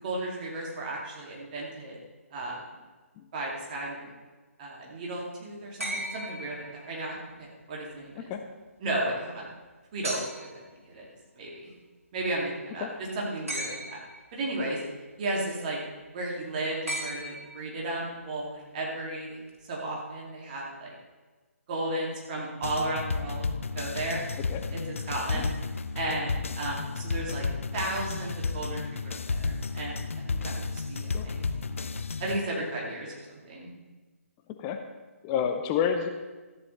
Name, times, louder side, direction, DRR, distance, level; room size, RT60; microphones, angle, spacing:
voice 1, 0.0-2.0 2.3-2.5 3.3-4.1 4.6-8.3 8.8-9.4 9.9-11.1 11.4-11.7 12.1-12.9 13.2-14.0 14.3-14.8 15.2-15.8 16.1-19.4 19.7-20.9 21.7-23.5 23.7-24.3 24.9-25.5 25.9-27.4 27.7-31.8 32.2-33.7, right 2 dB, 35° right, -3 dB, 2.6 m, -34 dB
sound 1, 5.8-7.2 10.0-10.7 13.5-14.3 16.9-17.9 19.5-19.6, right 1 dB, 80° right, 2.7 m, -36 dB
sound 2, 22.6-32.4, left 4 dB, 65° left, 0.6 m, -32 dB
voice 2, 35.2-36.1, left 8 dB, 20° left, 6 dB, 0.6 m, -29 dB
14.0 x 9.6 x 3.3 m, 1.3 s
figure-of-eight pair, 140°, 8 cm